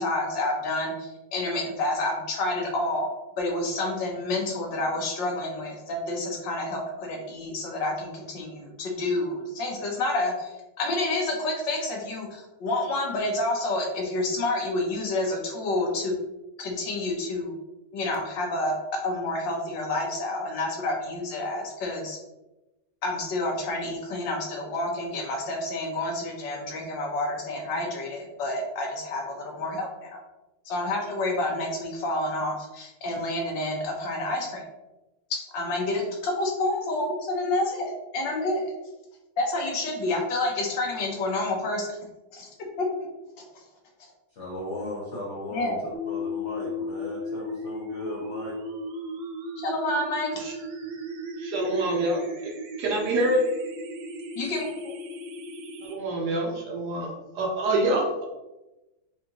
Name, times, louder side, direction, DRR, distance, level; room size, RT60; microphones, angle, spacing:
voice 1, 0.0-10.5 10.8-16.1 16.6-17.5 17.9-22.2 23.0-30.2 30.7-34.6 35.5-38.7 39.4-42.0 42.3-42.5 43.0-43.1 45.5-45.8 49.6-50.3 54.4-54.9, left 2 dB, 75° left, 0 dB, 1.5 m, -29 dB
voice 2, 44.4-48.6, left 1 dB, 50° left, -6 dB, 0.9 m, -36 dB
sound 1, 45.9-55.9, left 1 dB, 85° right, 1.4 m, -36 dB
voice 3, 51.4-52.5 52.8-53.4 55.9-58.2, right 1 dB, 65° right, -1 dB, 1.1 m, -26 dB
4.9 x 2.6 x 2.8 m, 1.0 s
omnidirectional pair, 2.1 m